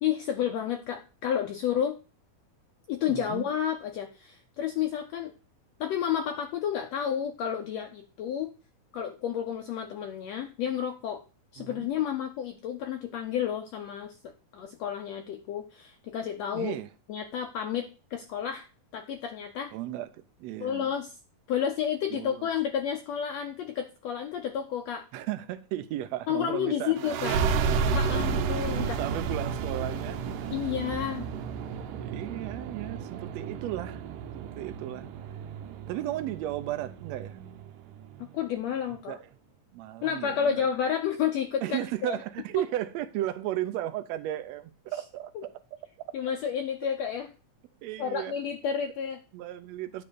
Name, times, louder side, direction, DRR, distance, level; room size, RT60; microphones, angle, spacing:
voice 1, 0.0-2.0 2.9-5.3 5.8-8.5 8.9-11.2 11.5-16.8 17.1-18.7 18.9-19.7 20.6-21.1 21.5-25.0 26.3-27.4 27.8-29.0 30.5-31.3 38.3-39.2 40.0-42.1 46.1-47.3 48.0-49.2, left 8 dB, 75° left, 1.6 m, -31 dB
voice 2, 3.1-3.4 11.6-11.9 16.5-16.9 19.7-20.9 22.1-22.5 25.1-27.1 28.8-30.2 31.9-35.1 35.9-37.4 38.9-39.3 39.7-40.7 41.6-45.5 47.8-48.3 49.3-50.0, right 13 dB, 75° right, 1.7 m, -35 dB
sound 1, 27.0-38.2, right 5 dB, 90° right, 2.4 m, -32 dB
9.5 x 3.8 x 6.7 m
omnidirectional pair, 3.7 m